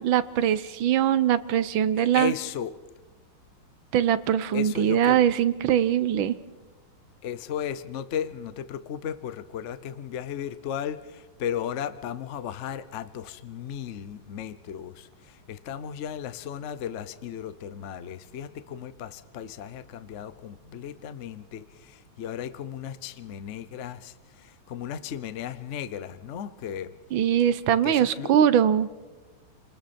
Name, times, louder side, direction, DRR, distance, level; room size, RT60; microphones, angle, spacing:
voice 1, 0.0-2.3 3.9-6.4 27.1-28.9, right 10 dB, 70° right, 15 dB, 1.5 m, -22 dB
voice 2, 2.1-2.7 4.5-5.2 7.2-26.9 27.8-28.3, left 9 dB, 60° left, 14 dB, 0.7 m, -35 dB
29.5 x 21.0 x 4.3 m, 1.3 s
omnidirectional pair, 2.3 m